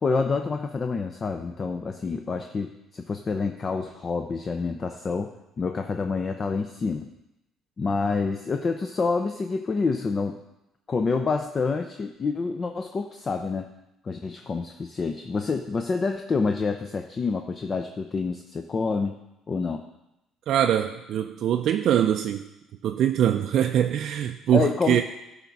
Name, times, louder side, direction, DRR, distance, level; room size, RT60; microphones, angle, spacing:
voice 1, 0.0-7.1 7.8-10.4 10.9-13.7 14.0-19.2 19.5-19.8 24.5-25.0, left 4 dB, 35° left, 5 dB, 0.5 m, -27 dB
voice 2, 20.5-22.4 22.8-25.0, right 10 dB, 65° right, 5 dB, 0.4 m, -23 dB
10.5 x 3.6 x 5.9 m, 0.90 s
supercardioid pair, 75°, 0 cm